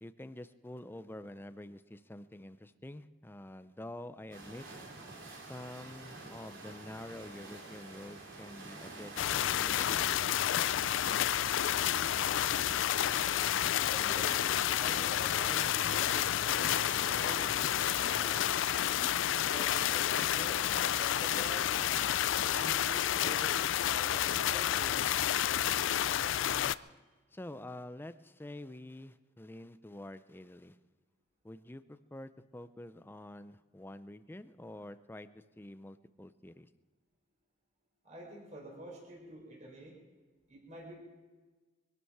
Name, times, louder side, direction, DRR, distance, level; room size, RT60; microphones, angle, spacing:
voice 1, 0.0-4.7 5.4-10.2 26.4-26.8 27.3-30.8 31.4-36.7, left 1 dB, 10° left, 12 dB, 0.5 m, -47 dB
sound 1, 4.3-22.7, right 2 dB, 80° right, 3.2 m, -49 dB
sound 2, 9.2-26.7, left 11 dB, 70° left, 0.4 m, -30 dB
voice 2, 13.9-18.6 19.3-20.6 21.0-21.7 22.4-23.6 23.9-25.2 38.0-39.9 40.5-40.9, right 1 dB, 40° right, -2 dB, 4.1 m, -48 dB
22.5 x 12.0 x 4.8 m, 1.3 s
head